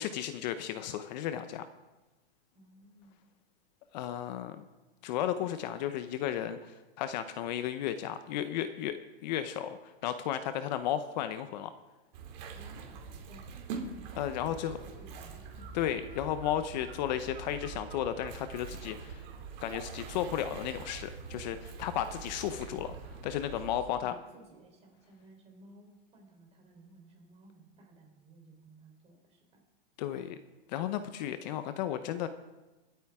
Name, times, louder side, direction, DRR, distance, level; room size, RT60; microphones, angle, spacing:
voice 1, 0.0-1.7 3.9-4.6 5.0-11.7 14.2-14.8 15.7-19.2 19.6-23.0 23.2-24.2 30.0-30.4 30.7-32.3, left 10 dB, 50° left, 10 dB, 0.8 m, -34 dB
voice 2, 2.6-3.2 5.4-5.5 12.5-13.7 14.1-15.8 23.4-29.6, right 2 dB, 20° right, 1 dB, 3.7 m, -57 dB
sound 1, 12.1-23.8, right 5 dB, 50° right, 2.6 m, -44 dB
24.0 x 9.2 x 3.6 m, 1.1 s
hypercardioid pair, 140°, 29 cm